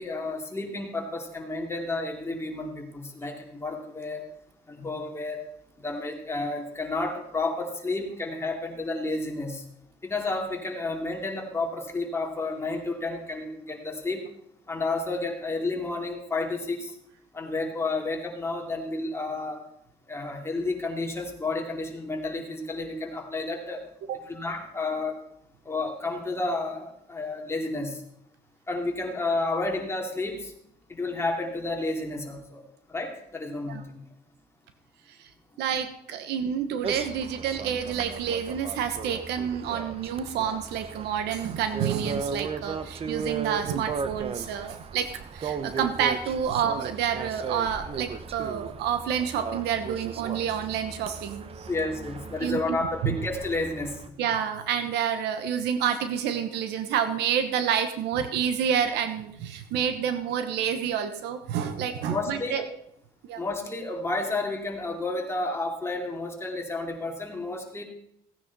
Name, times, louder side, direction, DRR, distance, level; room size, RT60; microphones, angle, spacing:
voice 1, 0.0-4.2 4.7-5.4 5.8-9.6 10.0-14.2 14.7-17.0 17.3-19.6 20.1-23.8 24.1-25.2 25.6-28.0 28.7-30.5 30.9-32.6 32.9-33.9 51.7-54.1 62.1-62.6 63.4-67.8, left 2 dB, 15° left, 1 dB, 2.7 m, -31 dB
voice 2, 35.6-51.7 52.4-52.6 53.0-53.2 54.2-62.7 63.3-63.4, right 8 dB, 80° right, 9 dB, 1.1 m, -28 dB
sound 1, 36.8-54.1, right 5 dB, 35° right, 0.9 m, -36 dB
16.5 x 9.6 x 4.1 m, 0.75 s
cardioid pair, 110°, 17 cm